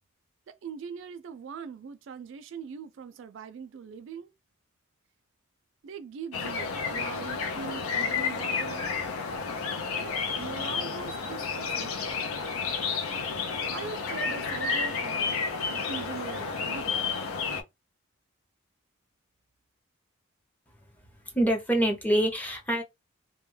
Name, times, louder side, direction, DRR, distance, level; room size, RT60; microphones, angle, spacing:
voice 1, 0.5-4.3 5.8-8.9 9.9-12.2 13.7-15.4 15.6-17.1, right 6 dB, 60° right, 0.3 m, -41 dB
Blackbird&Starling, 6.3-17.6, left 5 dB, 90° left, 0.5 m, -31 dB
voice 2, 21.2-22.8, right 1 dB, 10° left, 0.5 m, -25 dB
2.2 x 2.1 x 3.1 m
head